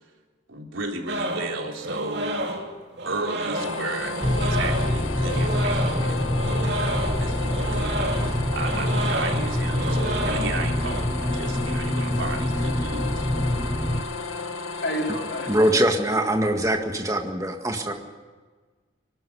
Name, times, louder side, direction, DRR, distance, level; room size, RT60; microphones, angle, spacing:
voice 1, 0.5-2.5 3.1-13.3, right 3 dB, 75° right, 1 dB, 3.6 m, -34 dB
sound 1, 1.1-11.0, right 1 dB, 55° right, 3.0 m, -30 dB
sound 2, 3.5-15.7, left 4 dB, 85° left, 1.5 m, -33 dB
sound 3, 4.2-14.0, left 1 dB, 10° left, 0.8 m, -26 dB
voice 2, 14.8-15.5 17.9-18.0, equal, 55° left, 0 dB, 4.1 m, -29 dB
voice 3, 15.5-17.9, right 1 dB, 15° right, 4 dB, 1.8 m, -22 dB
25.0 x 13.0 x 9.6 m, 1.4 s
head